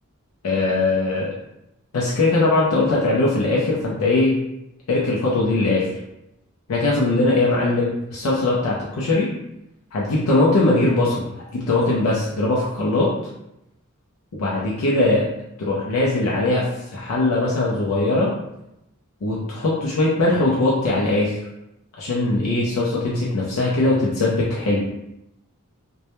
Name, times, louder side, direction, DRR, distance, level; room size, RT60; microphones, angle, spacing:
voice 1, 0.4-1.3 1.9-4.4 4.9-5.9 6.7-9.3 9.9-11.2 11.5-13.1 14.3-15.2 15.6-18.3 19.2-21.4 22.0-24.8, left 2 dB, 85° left, -5 dB, 0.5 m, -20 dB
2.2 x 2.0 x 2.9 m, 0.86 s
head